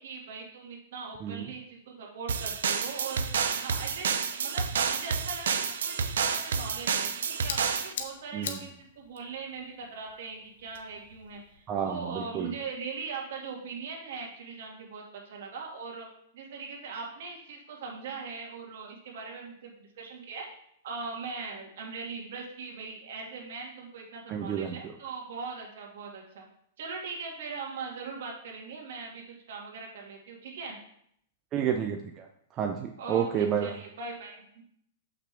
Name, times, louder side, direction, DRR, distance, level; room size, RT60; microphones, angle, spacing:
voice 1, 0.0-3.2 3.6-16.1 16.3-20.5 20.8-26.4 26.8-30.8 33.0-34.6, right 4 dB, 70° right, 0 dB, 2.0 m, -40 dB
sound 1, 2.3-7.9, right 6 dB, 85° right, 0.7 m, -29 dB
sound 2, 6.9-11.7, left 6 dB, 75° left, 1.1 m, -43 dB
voice 2, 11.7-12.5 24.3-24.8 31.5-32.3 32.6-33.8, right 8 dB, 25° right, 3 dB, 0.5 m, -30 dB
7.4 x 5.9 x 3.4 m, 0.69 s
hypercardioid pair, 150°, 0 cm